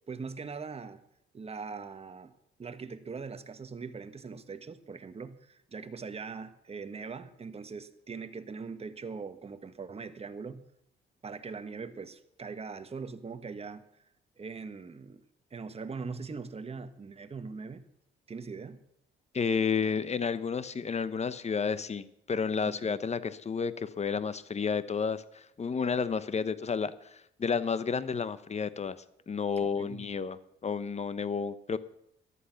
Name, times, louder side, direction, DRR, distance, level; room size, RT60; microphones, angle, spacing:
voice 1, 0.1-1.0 1.3-2.3 2.6-10.6 11.2-13.8 14.4-15.2 15.5-17.8 18.3-18.8 22.6-23.0 29.6-30.0, right 5 dB, 30° right, 10 dB, 1.3 m, -41 dB
voice 2, 19.3-29.0 29.3-31.8, left 5 dB, 35° left, 15 dB, 1.0 m, -31 dB
14.0 x 11.0 x 5.9 m, 0.74 s
cardioid pair, 90°, 20 cm